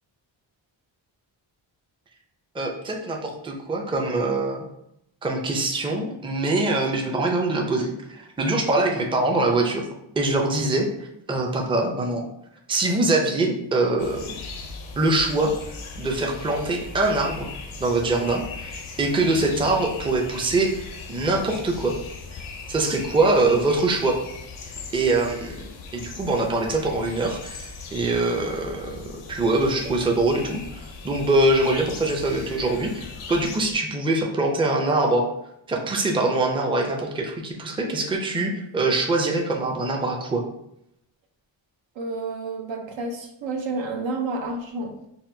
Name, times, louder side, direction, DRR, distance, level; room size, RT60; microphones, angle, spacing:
voice 1, 2.5-4.6 5.2-9.9 10.2-10.9 11.3-12.2 12.7-14.3 15.0-15.5 16.0-17.5 17.8-20.8 21.1-21.9 22.3-22.4 22.7-24.2 24.9-35.3 35.7-40.4, right 2 dB, 10° right, 0 dB, 0.5 m, -23 dB
sound 1, 14.0-33.7, left 4 dB, 85° left, 0.7 m, -39 dB
voice 2, 42.0-45.0, right 3 dB, 70° right, 2 dB, 0.7 m, -30 dB
4.2 x 2.0 x 2.7 m, 0.79 s
cardioid pair, 75°, 48 cm